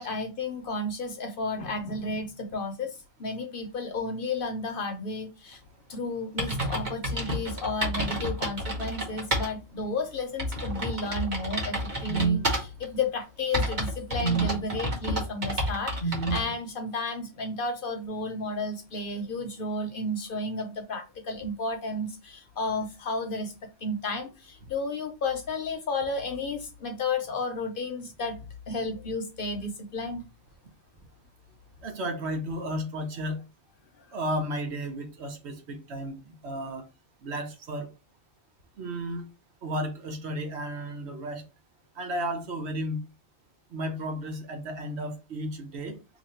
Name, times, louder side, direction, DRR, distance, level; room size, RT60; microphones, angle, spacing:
voice 1, 0.0-5.6 5.9-11.8 12.0-23.5 23.8-28.4 28.7-30.2, left 1 dB, 55° left, 0.8 m, -32 dB
sound 1, 5.9-6.0 6.4-9.5 9.9-10.0 10.4-12.9 13.5-16.4, equal, 40° right, 1.2 m, -30 dB
voice 2, 31.8-33.4 34.1-36.8 37.2-37.9 38.8-39.2 39.6-41.4 42.0-43.0 43.7-45.9, equal, 70° right, 1.0 m, -33 dB
2.9 x 2.6 x 4.2 m
omnidirectional pair, 1.2 m